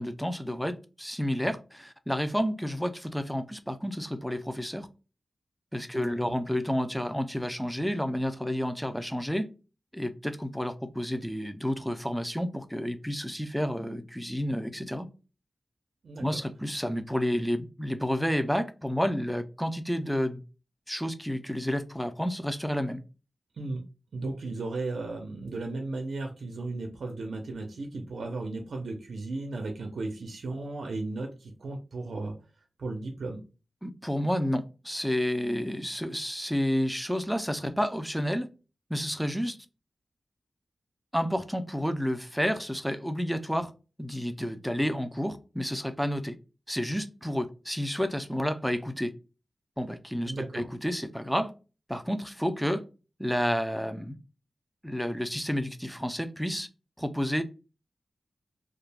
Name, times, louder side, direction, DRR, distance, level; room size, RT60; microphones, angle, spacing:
voice 1, 0.0-4.9 5.7-9.5 9.9-15.1 16.2-20.4 20.9-23.0 33.8-38.5 38.9-39.6 41.1-43.7 44.0-46.4 46.7-49.1 49.8-51.5 51.9-52.8 53.2-54.2 54.8-56.7 57.0-57.4, equal, ahead, 0.3 m, -30 dB
voice 2, 5.9-6.4 16.0-16.3 23.5-23.8 24.1-32.3 32.8-33.4 50.2-50.7, right 2 dB, 85° right, 0.5 m, -35 dB
2.3 x 2.1 x 3.3 m
wide cardioid pair, 135°, 0 cm